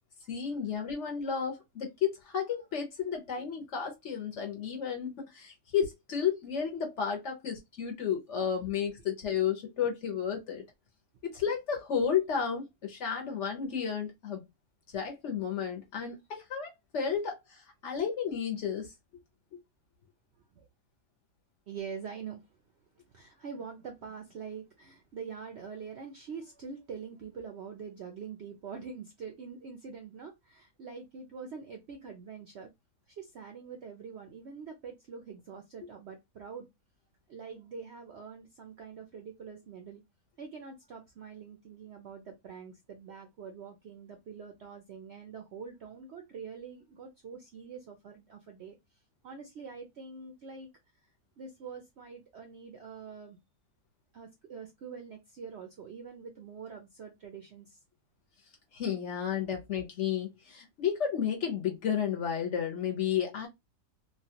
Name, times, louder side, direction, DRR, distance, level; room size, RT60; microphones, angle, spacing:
voice 1, 0.3-10.6 11.2-14.4 14.9-18.9 19.5-19.6 58.7-63.5, left 7 dB, 55° left, 0.9 m, -32 dB
voice 2, 2.4-2.9 11.7-11.8 20.5-20.7 21.7-22.5 23.1-32.7 33.2-36.7 37.3-40.0 40.4-48.8 49.2-50.7 51.4-53.4 54.1-57.8 59.4-59.6, right 6 dB, 65° right, 0.6 m, -45 dB
3.1 x 2.3 x 2.7 m
omnidirectional pair, 1.7 m